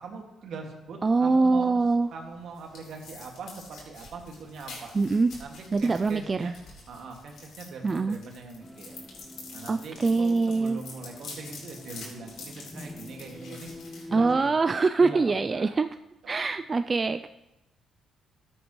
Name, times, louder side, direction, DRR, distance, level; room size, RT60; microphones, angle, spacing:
voice 1, 0.0-1.8 2.1-4.9 5.4-6.6 6.9-9.0 9.5-14.5 15.0-15.8 16.2-16.4, right 4 dB, 70° right, 1 dB, 2.1 m, -42 dB
voice 2, 1.0-2.1 4.9-5.3 5.7-6.5 7.8-8.2 9.7-10.8 14.1-15.9 16.3-17.3, right 3 dB, 30° right, 9 dB, 0.3 m, -24 dB
sound 1, 2.0-14.7, left 3 dB, 75° left, 4.0 m, -47 dB
sound 2, 8.6-14.4, left 1 dB, 5° left, 0.6 m, -46 dB
14.0 x 8.8 x 3.2 m, 0.94 s
cardioid pair, 90°, 0 cm